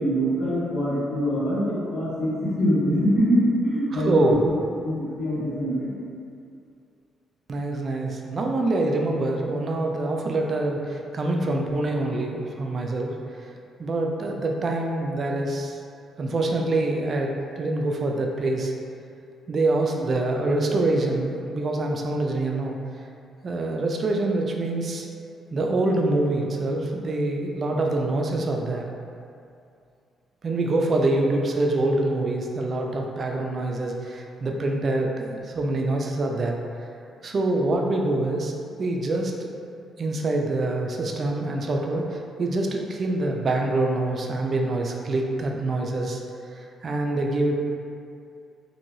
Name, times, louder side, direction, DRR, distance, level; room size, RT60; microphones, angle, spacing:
voice 1, 0.0-4.3 4.8-5.9, equal, 55° left, -12 dB, 1.4 m, -24 dB
voice 2, 3.9-4.4 7.5-13.1 13.4-13.5 13.8-15.8 16.2-18.7 19.5-22.8 23.4-25.1 25.5-28.9 30.4-36.6 37.2-38.5 38.8-39.5 40.0-46.2 46.6-47.6, right 2 dB, 45° right, 1 dB, 0.4 m, -25 dB
3.0 x 2.6 x 2.6 m, 2.5 s
cardioid pair, 90°, 0 cm